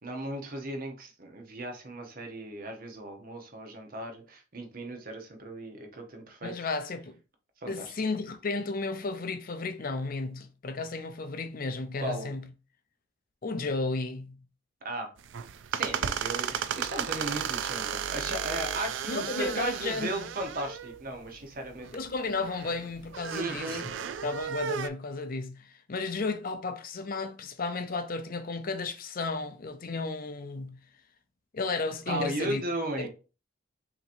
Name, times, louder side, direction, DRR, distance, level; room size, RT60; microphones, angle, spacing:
voice 1, 0.0-6.5 7.6-7.9 12.0-12.3 14.8-15.1 15.7-21.9 23.3-23.9 32.1-33.1, right 1 dB, 45° right, 1.0 m, -36 dB
voice 2, 6.4-7.1 7.7-12.5 13.4-14.4 19.1-20.3 21.9-23.9 24.2-30.8 31.5-32.6 33.0-33.1, left 3 dB, 45° left, 0.6 m, -33 dB
sound 1, 15.2-24.9, right 7 dB, 65° right, 0.4 m, -34 dB
5.7 x 2.9 x 2.6 m
head